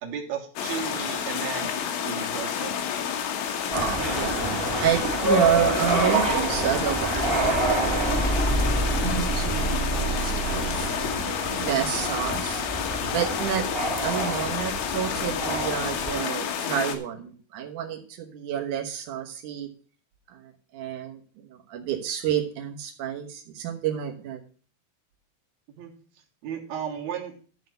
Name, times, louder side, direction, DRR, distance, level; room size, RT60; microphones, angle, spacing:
voice 1, 0.0-2.7 13.0-13.2 25.8-25.9 26.4-27.3, right 7 dB, 55° right, 1 dB, 2.2 m, -34 dB
sound 1, 0.6-17.0, left 8 dB, 75° left, 3.6 m, -30 dB
sound 2, 3.7-16.2, right 2 dB, 25° right, 1.2 m, -27 dB
voice 2, 3.7-8.6 9.3-11.1 11.6-12.6 13.1-13.7 14.0-19.7 20.3-24.4, right 10 dB, 90° right, 1 dB, 1.7 m, -29 dB
12.0 x 4.2 x 7.9 m, 0.41 s
omnidirectional pair, 5.5 m